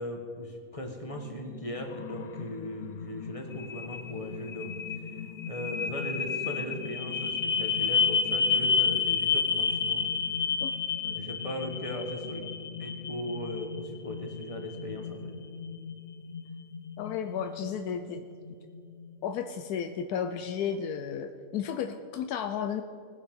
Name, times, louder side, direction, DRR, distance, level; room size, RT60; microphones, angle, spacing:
voice 1, 0.0-4.8 5.5-10.0 11.0-12.5 12.8-15.3, equal, 25° left, 3 dB, 1.3 m, -38 dB
sound 1, 1.1-19.2, left 6 dB, 50° left, 0.6 m, -32 dB
voice 2, 17.0-18.3 19.2-22.8, left 7 dB, 85° left, 7 dB, 1.1 m, -33 dB
19.5 x 6.8 x 5.3 m, 2.5 s
omnidirectional pair, 1.6 m